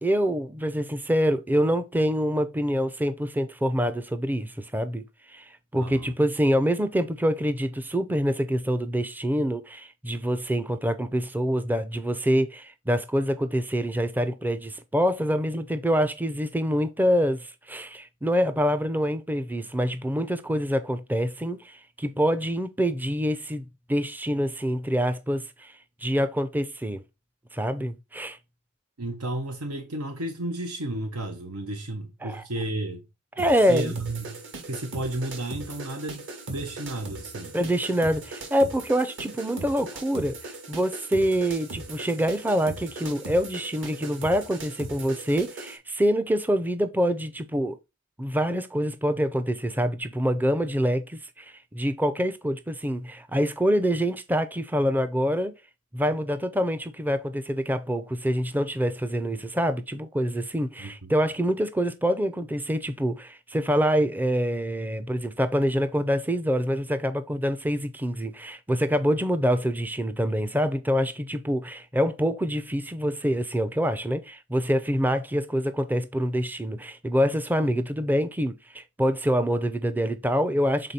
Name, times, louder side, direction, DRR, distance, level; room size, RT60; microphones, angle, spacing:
voice 1, 0.0-5.0 5.3-25.7 26.0-27.0 27.5-28.4 32.2-32.4 33.4-33.9 37.5-47.8 48.2-55.5 55.9-80.9, equal, 10° right, 0.5 m, -26 dB
voice 2, 5.7-6.1 29.0-33.0 33.7-37.5 60.8-61.1, right 2 dB, 85° right, 1.3 m, -33 dB
sound 1, 33.4-45.8, right 2 dB, 60° right, 2.1 m, -39 dB
6.8 x 4.0 x 4.1 m
head